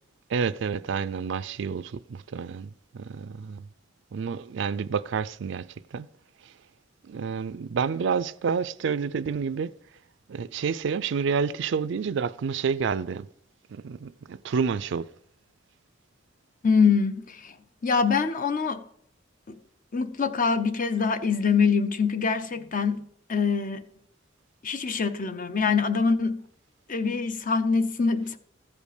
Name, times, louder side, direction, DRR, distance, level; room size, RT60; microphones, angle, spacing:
voice 1, 0.3-3.7 4.1-6.1 6.4-6.5 7.0-9.7 10.3-13.3 13.7-15.1, right 6 dB, 70° right, 0.4 m, -29 dB
voice 2, 16.6-17.5 17.8-18.8 19.5-19.6 19.9-23.0 23.3-23.8 24.6-26.4 26.9-28.4, left 5 dB, 45° left, 0.7 m, -24 dB
14.5 x 5.2 x 4.9 m
head